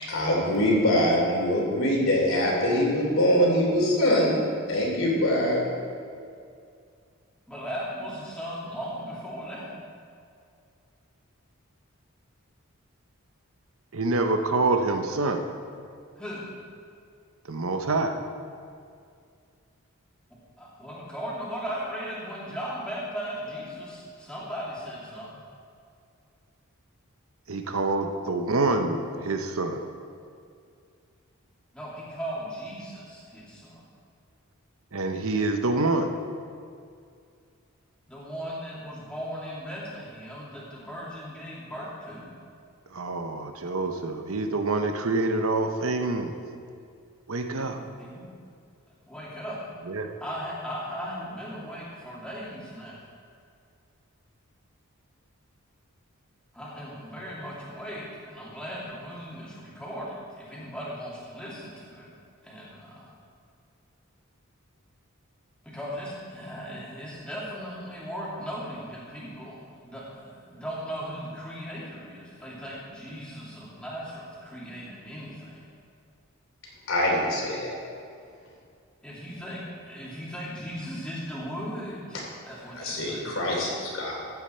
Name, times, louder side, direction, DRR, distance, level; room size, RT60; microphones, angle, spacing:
voice 1, 0.1-4.4 4.7-5.6 76.9-77.7 82.7-84.2, left 1 dB, 65° left, -3 dB, 3.2 m, -23 dB
voice 2, 7.5-9.7 16.2-16.5 20.6-25.4 31.7-33.8 38.1-42.2 47.7-48.2 49.1-49.6 50.2-53.1 56.5-62.1 62.4-63.1 65.6-75.6 79.0-83.4, equal, 5° left, -7 dB, 2.5 m, -37 dB
voice 3, 13.9-15.4 17.5-18.2 27.5-29.8 34.9-36.1 42.9-46.3 47.3-47.8 49.9-50.1, right 3 dB, 70° right, 6 dB, 0.9 m, -26 dB
14.5 x 8.6 x 4.4 m, 2.3 s
head